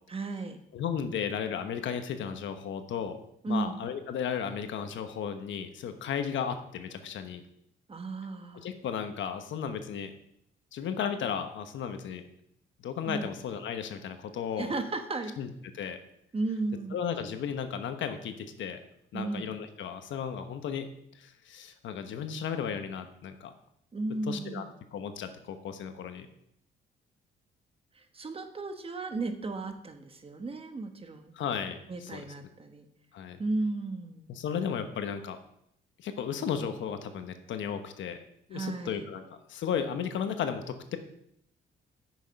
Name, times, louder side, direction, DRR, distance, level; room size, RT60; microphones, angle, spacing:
voice 1, 0.1-0.6 3.4-3.8 7.9-8.7 13.1-13.3 14.6-15.4 16.3-17.0 19.1-19.5 23.9-24.7 28.1-31.3 31.9-32.8 33.4-34.3 38.5-39.0, right 2 dB, 30° right, 6 dB, 1.2 m, -34 dB
voice 2, 0.7-3.2 3.5-7.4 8.6-10.1 10.7-12.2 12.8-14.8 15.4-15.5 15.8-16.0 16.9-18.8 19.1-20.9 21.1-23.5 24.3-24.6 24.9-26.3 31.3-32.3 33.1-33.4 34.3-35.4 36.0-38.2 38.5-39.2 39.5-41.0, left 7 dB, 75° left, 8 dB, 1.1 m, -34 dB
8.5 x 6.3 x 5.3 m, 0.75 s
cardioid pair, 90°, 20 cm